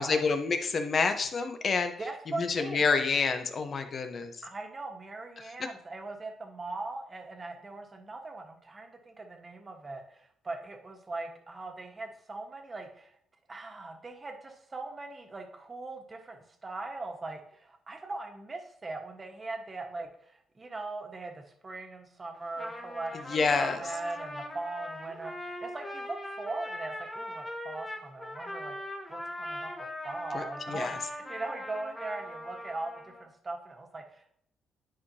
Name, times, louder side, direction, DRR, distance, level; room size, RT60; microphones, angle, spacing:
voice 1, 0.0-1.9 2.3-4.3 5.4-5.7 23.3-23.8 30.3-31.0, left 4 dB, 45° left, 7 dB, 0.9 m, -28 dB
voice 2, 2.0-3.0 4.4-13.2 13.5-28.8 29.1-34.4, right 2 dB, 30° right, 3 dB, 1.3 m, -40 dB
Trumpet, 22.4-33.3, left 1 dB, 15° left, 1.3 m, -41 dB
10.0 x 4.8 x 2.8 m, 0.70 s
cardioid pair, 90°, 0 cm